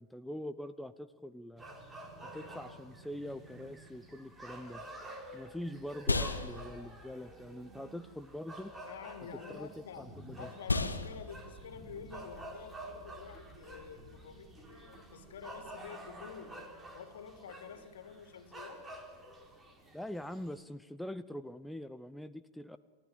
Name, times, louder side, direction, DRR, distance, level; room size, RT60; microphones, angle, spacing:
voice 1, 0.0-1.6 2.2-4.8 5.3-8.7 9.5-9.7 10.0-10.5 19.9-22.8, left 1 dB, 5° left, 12 dB, 0.7 m, -43 dB
sound 1, 1.6-20.6, right 1 dB, 15° right, 3.9 m, -50 dB
sound 2, 4.7-14.3, left 3 dB, 90° left, 1.4 m, -39 dB
voice 2, 8.9-10.1 10.4-16.6 16.9-18.8, left 7 dB, 70° left, 7 dB, 2.8 m, -49 dB
29.5 x 14.5 x 7.5 m, 1.5 s
figure-of-eight pair, 95°, 0 cm